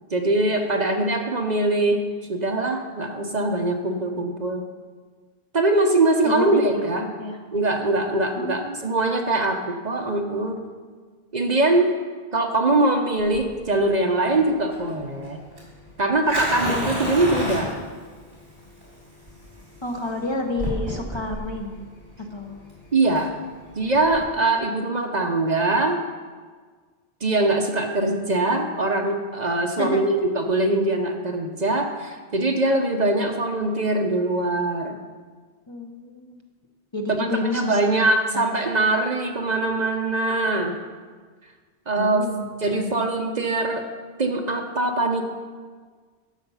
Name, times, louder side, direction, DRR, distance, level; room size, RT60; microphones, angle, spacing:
voice 1, 0.1-2.0 2.3-4.6 5.5-7.0 7.5-10.6 11.3-12.0 12.3-15.4 16.0-17.7 22.9-23.3 23.8-26.0 27.2-35.0 37.2-37.3 37.5-40.8 41.9-42.3 42.6-43.8 44.2-45.2, right 2 dB, 45° right, 4 dB, 0.9 m, -22 dB
voice 2, 6.2-7.4 8.4-8.8 16.7-17.0 19.8-21.7 22.2-22.6 29.8-30.1 35.7-36.4 36.9-38.0 38.3-38.5 42.0-42.9, left 2 dB, 30° left, 2 dB, 0.9 m, -30 dB
Fire, 13.2-24.2, equal, 65° right, 3.8 m, -32 dB
12.5 x 6.9 x 5.5 m, 1.5 s
omnidirectional pair, 1.0 m